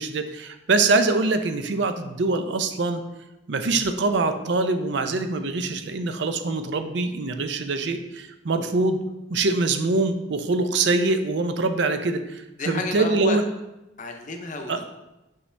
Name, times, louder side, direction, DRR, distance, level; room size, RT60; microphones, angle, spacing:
voice 1, 0.0-3.0 3.5-9.0 9.3-13.4 14.7-14.8, right 3 dB, 65° right, 8 dB, 0.5 m, -24 dB
voice 2, 12.6-13.4 14.0-14.8, left 2 dB, 45° left, 5 dB, 0.7 m, -31 dB
5.5 x 5.4 x 3.3 m, 0.96 s
head